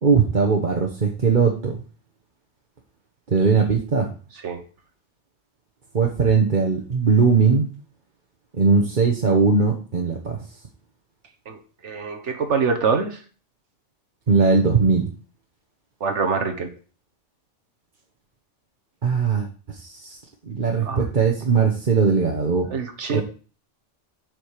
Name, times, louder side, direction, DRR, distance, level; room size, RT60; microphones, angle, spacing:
voice 1, 0.0-1.7 3.3-4.1 5.9-7.7 8.5-10.4 14.3-15.1 19.0-20.2 20.5-22.7 23.1-23.2, right 5 dB, 45° right, 0 dB, 1.3 m, -19 dB
voice 2, 11.5-13.2 16.0-16.7 20.8-21.0 22.7-23.2, right 5 dB, 75° right, 5 dB, 1.5 m, -25 dB
7.8 x 5.2 x 6.6 m, 0.38 s
omnidirectional pair, 1.2 m